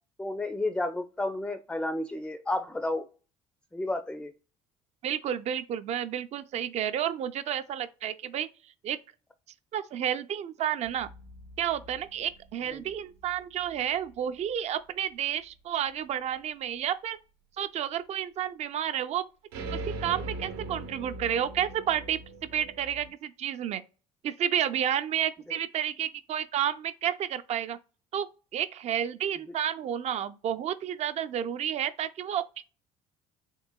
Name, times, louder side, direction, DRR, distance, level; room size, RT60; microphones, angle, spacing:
voice 1, 0.2-3.1 3.7-4.3 12.7-12.8, left 2 dB, 5° left, 0.4 m, -31 dB
voice 2, 5.0-8.5 8.8-9.0 9.7-11.1 11.6-17.2 17.6-19.2 19.7-22.2 22.5-23.8 24.2-27.8 28.1-28.3 28.5-32.4, right 10 dB, 50° right, 0.4 m, -31 dB
sound 1, 10.8-13.8 19.5-23.1, right 2 dB, 85° right, 0.8 m, -41 dB
3.8 x 2.9 x 2.2 m
supercardioid pair, 90°, 14 cm